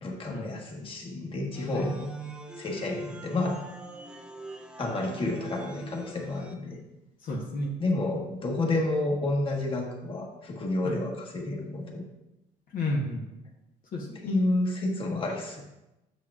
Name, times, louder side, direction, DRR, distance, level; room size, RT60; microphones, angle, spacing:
voice 1, 0.0-2.1 2.6-3.6 4.8-6.8 7.8-12.0 14.2-15.6, left 2 dB, 30° left, -1 dB, 1.4 m, -30 dB
sound 1, 1.5-6.5, right 2 dB, 5° right, 0.6 m, -43 dB
voice 2, 7.2-7.7 10.8-11.0 12.7-13.2 13.9-14.4, left 2 dB, 55° left, -2 dB, 1.0 m, -31 dB
7.5 x 6.7 x 2.4 m, 0.95 s
cardioid pair, 110°, 17 cm